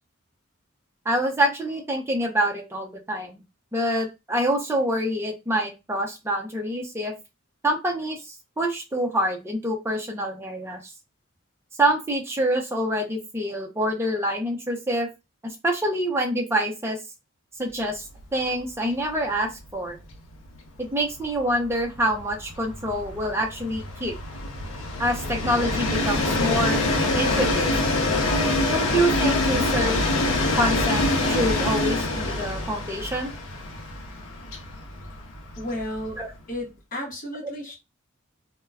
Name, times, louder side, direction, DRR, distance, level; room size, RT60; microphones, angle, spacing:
voice 1, 1.1-3.4 3.7-7.1 7.6-10.8 11.8-15.1 15.4-17.0 17.6-18.1 18.3-20.0 20.8-24.1 25.0-26.8 27.1-27.7 28.7-30.0 30.6-33.3 36.2-36.3 37.4-37.5, right 1 dB, 10° right, 0.5 m, -26 dB
Train, 18.1-18.3 18.6-18.7 19.0-36.4, left 2 dB, 75° left, 0.6 m, -26 dB
voice 2, 35.6-36.2 36.5-37.7, left 1 dB, 40° left, 0.9 m, -33 dB
2.2 x 2.1 x 3.4 m
head